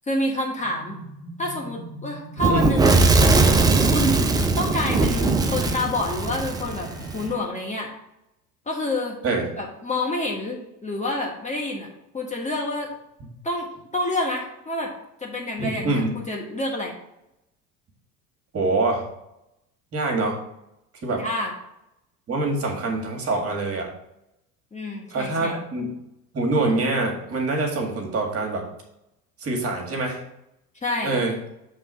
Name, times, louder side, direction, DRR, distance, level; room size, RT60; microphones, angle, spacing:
voice 1, 0.1-1.0 1.4-3.0 3.9-7.9 8.7-9.2 9.6-11.9 12.1-12.9 13.4-14.9 15.2-16.9 21.1-21.5 24.7-25.6 30.8-31.2, left 1 dB, 15° left, -1 dB, 1.3 m, -28 dB
sound 1, 0.6-7.4, right 1 dB, 40° left, 2.5 m, -40 dB
Fire / Explosion, 2.4-7.2, right 3 dB, 10° right, 0.4 m, -20 dB
voice 2, 15.6-16.1 18.5-19.1 19.9-20.4 21.0-21.2 22.3-23.9 25.1-25.9 26.3-28.7 29.4-30.2 31.0-31.3, right 2 dB, 30° right, 1 dB, 1.7 m, -25 dB
7.2 x 3.5 x 5.5 m, 0.84 s
figure-of-eight pair, 70°, 46 cm